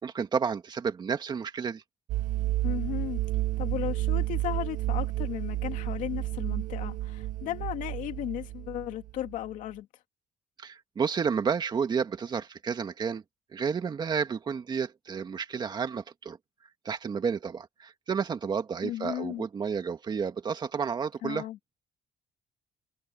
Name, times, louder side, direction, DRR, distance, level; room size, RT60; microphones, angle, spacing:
voice 1, 0.0-1.8 10.6-13.2 13.5-16.4 16.8-21.5, right 6 dB, 35° right, 2.1 m, -31 dB
sound 1, 2.1-9.5, right 15 dB, 80° right, 1.1 m, -31 dB
voice 2, 2.6-3.2 3.6-9.9 18.8-19.5 21.2-21.6, left 13 dB, 85° left, 2.7 m, -35 dB
cardioid pair, 145°, 13 cm